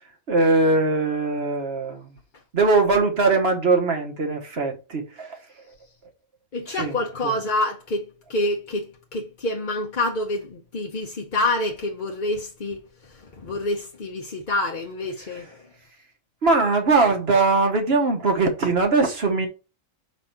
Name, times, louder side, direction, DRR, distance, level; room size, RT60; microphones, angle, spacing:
voice 1, 0.3-2.2 2.5-5.4 6.7-6.9 7.2-7.3 15.3-15.4 16.4-19.5, right 3 dB, 45° right, 1.4 m, -21 dB
voice 2, 6.5-15.6, left 2 dB, 40° left, 0.8 m, -27 dB
5.0 x 4.1 x 5.8 m
omnidirectional pair, 1.6 m